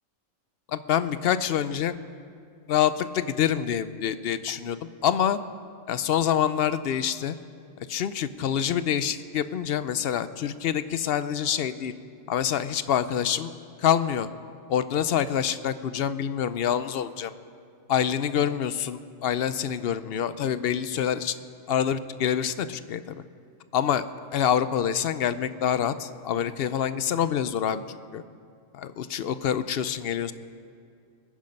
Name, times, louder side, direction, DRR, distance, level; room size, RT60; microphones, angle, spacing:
voice 1, 0.7-2.0 2.7-5.4 5.9-7.3 7.8-11.9 12.3-13.5 13.8-14.3 14.7-17.3 17.9-21.3 21.7-23.2 23.7-24.0 24.3-28.2 28.7-30.3, left 9 dB, 60° left, 13 dB, 0.7 m, -26 dB
22.5 x 10.0 x 5.3 m, 2.3 s
omnidirectional pair, 1.3 m